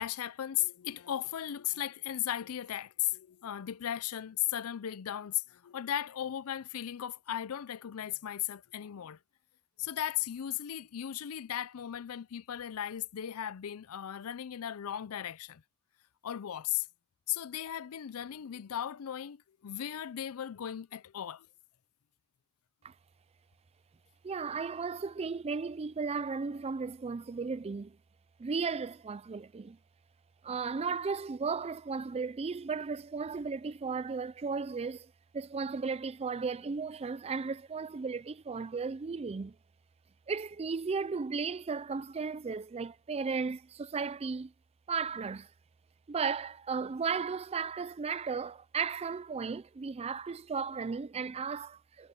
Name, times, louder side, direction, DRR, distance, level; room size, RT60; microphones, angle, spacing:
voice 1, 0.0-9.2 9.8-15.6 16.2-16.9 17.3-21.5, left 11 dB, 70° left, 0.4 m, -36 dB
voice 2, 24.2-28.0 28.4-29.8 30.4-39.6 40.3-44.5 44.9-45.5 46.1-52.1, right 5 dB, 25° right, 0.4 m, -35 dB
head